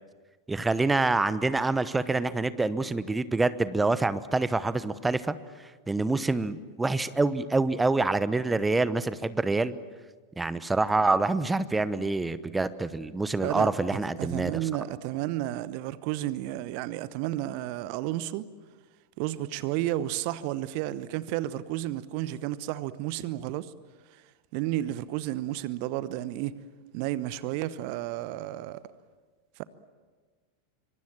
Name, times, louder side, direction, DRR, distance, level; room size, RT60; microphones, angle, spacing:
voice 1, 0.5-5.3 5.9-9.7 10.4-14.6, right 3 dB, 10° right, 1.0 m, -26 dB
voice 2, 13.4-18.5 19.2-23.7 24.5-26.6 26.9-28.8 29.6-29.7, right 14 dB, 50° right, 0.9 m, -32 dB
26.5 x 25.0 x 7.5 m
figure-of-eight pair, 85°, 0 cm